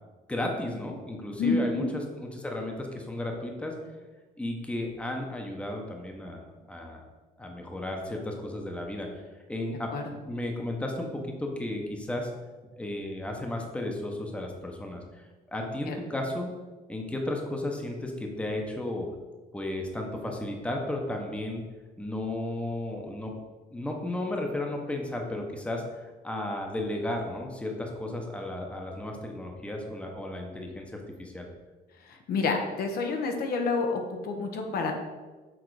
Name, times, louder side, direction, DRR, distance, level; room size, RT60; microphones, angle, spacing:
voice 1, 0.3-3.7 4.4-6.4 6.7-7.0 7.4-9.2 9.5-12.3 12.8-16.5 16.9-19.1 19.5-21.6 22.0-23.3 23.7-31.5, left 1 dB, 5° left, 1 dB, 0.9 m, -34 dB
voice 2, 1.4-1.9 9.9-10.0 15.9-16.0 32.0-34.9, left 4 dB, 65° left, 3 dB, 1.0 m, -29 dB
6.3 x 3.9 x 4.8 m, 1.3 s
cardioid pair, 110°, 17 cm